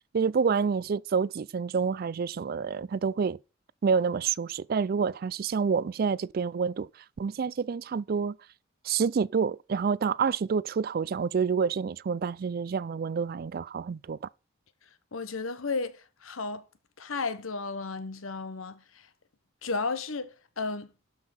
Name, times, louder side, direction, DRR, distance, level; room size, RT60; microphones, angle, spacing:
voice 1, 0.1-3.4 3.8-6.9 7.2-8.4 8.8-14.2, right 6 dB, 45° right, 0.4 m, -28 dB
voice 2, 15.1-16.6 17.0-19.1 19.6-20.9, left 4 dB, 85° left, 1.1 m, -33 dB
12.0 x 5.7 x 4.4 m
head